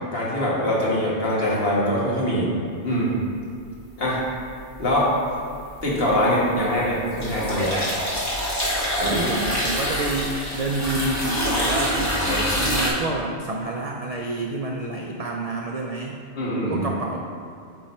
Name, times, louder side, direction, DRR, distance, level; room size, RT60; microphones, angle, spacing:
voice 1, 0.1-2.5 2.8-3.1 4.0-4.2 4.8-5.1 5.8-7.7 9.0-9.2 12.1-12.5 16.3-16.9, equal, 55° left, -6 dB, 1.6 m, -23 dB
sound 1, 4.8-5.3 5.7-12.9, equal, 15° left, 1.2 m, -26 dB
voice 2, 9.0-12.2 12.6-16.2 16.7-17.2, right 2 dB, 75° right, 0 dB, 0.3 m, -28 dB
8.2 x 3.1 x 4.2 m, 2.3 s
omnidirectional pair, 1.2 m